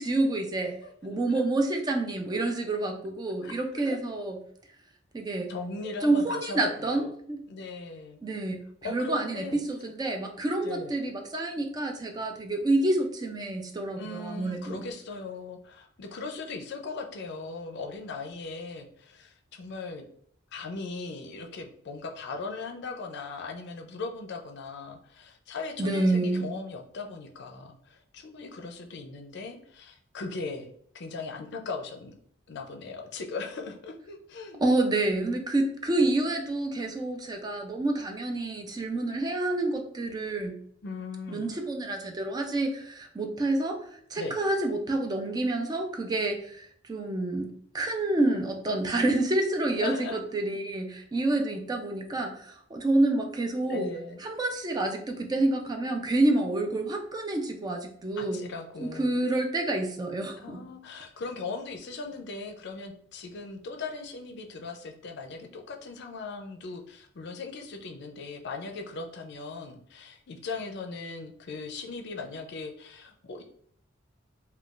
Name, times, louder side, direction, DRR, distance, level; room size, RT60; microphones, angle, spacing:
voice 1, 0.0-0.8 1.0-4.4 5.1-5.5 6.0-7.4 8.2-14.8 25.8-26.5 34.6-40.6 41.3-53.9 54.2-58.4 58.8-60.6, right 2 dB, 20° right, 4 dB, 0.3 m, -28 dB
voice 2, 5.5-7.0 7.5-8.2 8.8-9.6 10.6-11.0 14.0-20.0 20.5-30.7 30.9-32.1 32.5-34.6 40.8-41.5 44.2-44.4 49.7-50.2 53.7-54.2 58.2-59.2 60.4-73.4, left 3 dB, 60° left, 4 dB, 0.4 m, -39 dB
3.7 x 2.2 x 2.4 m, 0.64 s
head